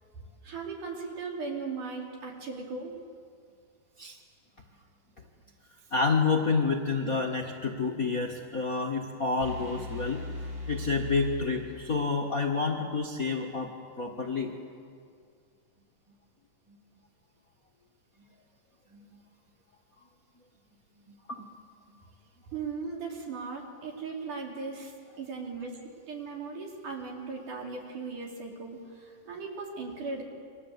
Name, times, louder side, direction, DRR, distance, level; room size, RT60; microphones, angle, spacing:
voice 1, 0.4-3.0 22.5-30.2, right 4 dB, 65° right, 0 dB, 5.4 m, -38 dB
voice 2, 5.9-10.2 10.7-13.7 14.0-14.5 18.9-19.0 21.3-21.4, left 4 dB, 35° left, 1 dB, 1.5 m, -29 dB
sound 1, 9.4-12.3, left 3 dB, 35° right, 6.9 m, -39 dB
29.5 x 24.5 x 8.3 m, 2.2 s
omnidirectional pair, 3.8 m